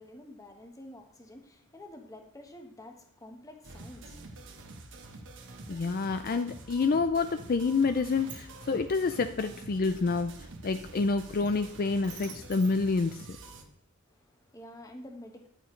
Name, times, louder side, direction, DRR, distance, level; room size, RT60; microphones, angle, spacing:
voice 1, 0.0-4.7 14.1-15.5, left 1 dB, 15° left, 1.2 m, -49 dB
sound 1, 3.6-13.6, right 2 dB, 55° right, 1.2 m, -47 dB
voice 2, 5.7-10.3 10.6-13.2, left 4 dB, 40° left, 0.4 m, -28 dB
Sliding door, 7.9-13.8, right 5 dB, 90° right, 3.2 m, -53 dB
10.5 x 9.0 x 3.2 m
head